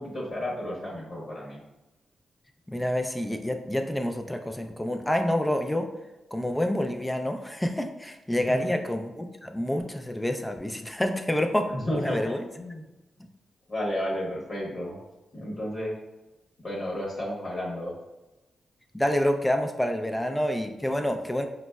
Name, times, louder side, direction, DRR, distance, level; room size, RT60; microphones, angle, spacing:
voice 1, 0.0-1.6 8.3-8.7 11.7-12.8 13.7-15.0 15.3-15.9 16.6-17.9, left 1 dB, 50° left, -4 dB, 0.9 m, -32 dB
voice 2, 2.7-5.9 6.3-11.7 12.0-12.4 18.9-21.5, left 1 dB, 10° left, 5 dB, 0.3 m, -28 dB
3.9 x 2.1 x 2.2 m, 1.0 s
cardioid pair, 60°, 0 cm